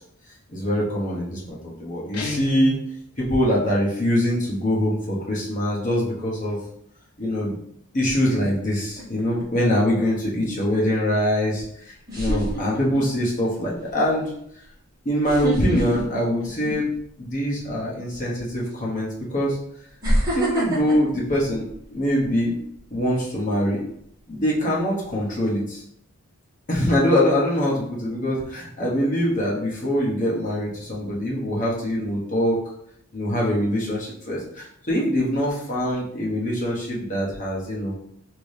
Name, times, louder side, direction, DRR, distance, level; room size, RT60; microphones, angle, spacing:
voice 1, 0.5-1.4 1.8-2.8 3.2-6.6 7.2-7.5 7.9-14.3 15.0-16.9 17.2-19.6 20.3-22.5 22.9-23.8 24.3-25.8 26.7-32.6 33.1-37.9, equal, 35° left, -5 dB, 0.9 m, -23 dB
Guitar, 2.1-2.9, left 4 dB, 85° left, 0.6 m, -31 dB
sound 1, 9.0-9.4 11.3-11.4 12.1-13.2 13.7-13.9 15.2-17.1 17.4-17.7 18.7-18.8 20.0-22.3 22.7-23.0, right 1 dB, 15° right, 1.3 m, -26 dB
2.9 x 2.7 x 3.2 m, 0.72 s
head